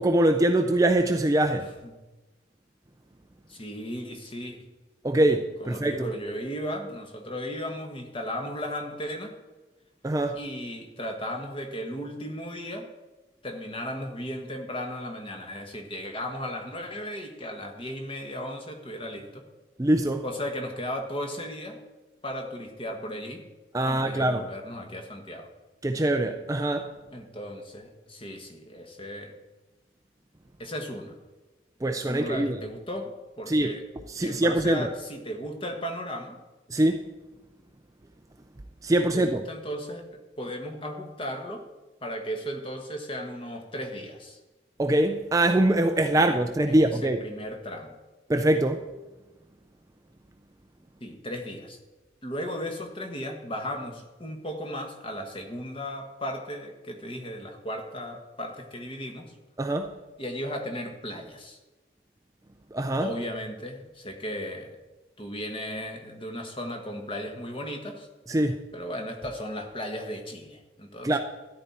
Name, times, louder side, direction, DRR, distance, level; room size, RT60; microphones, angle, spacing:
voice 1, 0.0-1.7 5.0-6.1 10.0-10.4 19.8-20.2 23.7-24.4 25.8-26.9 31.8-32.6 33.5-33.7 34.1-34.9 36.7-37.0 38.8-39.4 44.8-47.2 48.3-48.9 59.6-59.9 62.7-63.1 68.3-68.6 71.0-71.2, right 1 dB, 15° right, 6 dB, 0.4 m, -23 dB
voice 2, 3.5-4.7 5.6-9.3 10.3-12.9 13.4-19.4 20.2-21.8 22.2-23.4 23.8-25.5 27.1-29.3 30.6-31.1 32.1-33.8 34.2-36.4 39.1-41.6 42.0-44.4 46.1-46.3 46.7-47.9 51.0-51.8 52.2-59.3 60.2-61.6 63.0-64.7 65.2-68.1 68.7-71.2, equal, 25° left, 4 dB, 1.3 m, -36 dB
13.0 x 9.6 x 4.3 m, 1.1 s
head